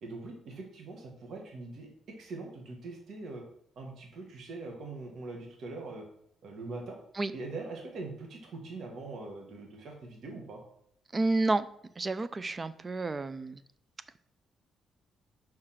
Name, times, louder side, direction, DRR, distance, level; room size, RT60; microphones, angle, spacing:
voice 1, 0.0-3.4 3.7-6.1 6.4-7.0 7.3-10.6, right 3 dB, 65° right, 1 dB, 1.7 m, -42 dB
voice 2, 11.1-11.7 12.0-13.6, right 2 dB, 30° right, 14 dB, 0.5 m, -30 dB
5.9 x 4.9 x 5.8 m, 0.71 s
cardioid pair, 90°, 0 cm